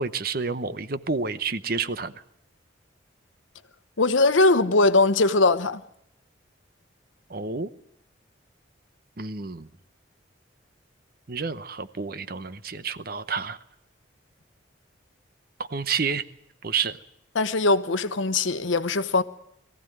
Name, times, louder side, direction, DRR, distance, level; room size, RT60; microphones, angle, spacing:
voice 1, 0.0-2.1 7.3-7.7 9.2-9.7 11.3-13.6 15.7-16.3 16.6-17.0, right 5 dB, 50° right, 0.9 m, -29 dB
voice 2, 4.0-5.8 17.3-19.2, left 3 dB, 80° left, 1.0 m, -21 dB
22.0 x 15.0 x 9.2 m
head